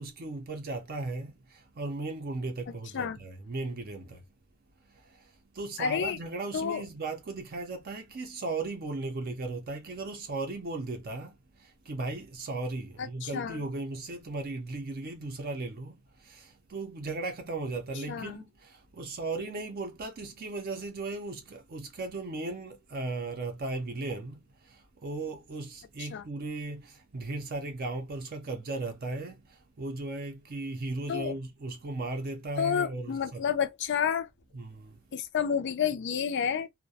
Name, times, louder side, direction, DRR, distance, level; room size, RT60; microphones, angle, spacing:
voice 1, 0.0-4.2 5.6-11.4 11.9-15.9 16.2-24.4 25.0-29.4 29.8-33.4 34.5-34.9, right 2 dB, 45° right, 0.5 m, -36 dB
voice 2, 2.7-3.2 5.8-6.2 6.5-6.8 13.2-13.6 18.1-18.4 26.0-26.2 31.1-31.4 32.6-34.3 35.1-36.7, left 7 dB, 55° left, 0.4 m, -30 dB
2.3 x 2.1 x 2.7 m
head